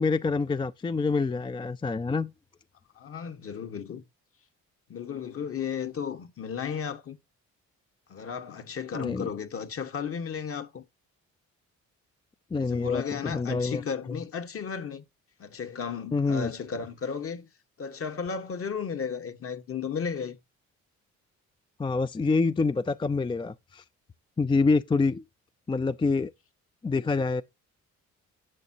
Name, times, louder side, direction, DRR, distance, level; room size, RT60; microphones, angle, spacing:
voice 1, 0.0-2.3 8.9-9.3 12.5-13.8 16.1-16.5 21.8-23.8 24.4-25.2 25.7-26.3 26.8-27.4, left 4 dB, 15° left, 0.4 m, -26 dB
voice 2, 2.9-4.0 4.9-7.2 8.1-10.8 12.5-15.0 15.4-17.5 17.8-20.4, left 6 dB, 50° left, 1.5 m, -34 dB
10.5 x 7.5 x 2.8 m
cardioid pair, 90°, 30 cm